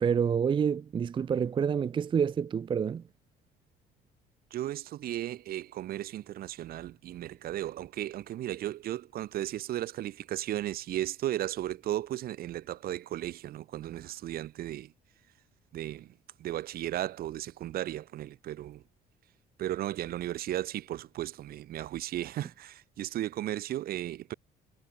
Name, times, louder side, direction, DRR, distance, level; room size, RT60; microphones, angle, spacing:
voice 1, 0.0-3.0, right 7 dB, 30° right, 0.5 m, -28 dB
voice 2, 4.5-14.9 15.7-16.1 16.4-18.8 19.6-24.3, right 13 dB, 65° right, 1.1 m, -35 dB
cardioid pair, 110°, 17 cm